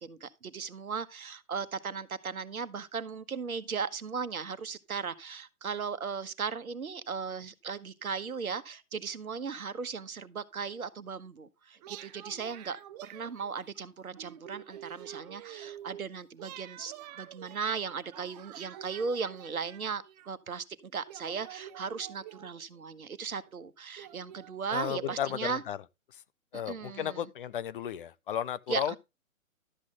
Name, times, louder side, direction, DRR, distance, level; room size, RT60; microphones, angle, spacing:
voice 1, 0.0-25.6 26.5-27.3 28.7-29.0, right 5 dB, 85° right, 1.2 m, -37 dB
sound 1, 11.8-13.8 14.2-16.1 16.4-20.3 21.1-22.8 23.5-23.6 24.0-25.2, right 12 dB, 30° right, 1.0 m, -48 dB
voice 2, 24.7-25.8 26.1-26.2 26.5-29.0, left 10 dB, 40° left, 0.6 m, -34 dB
12.5 x 7.7 x 3.7 m
hypercardioid pair, 135°, 42 cm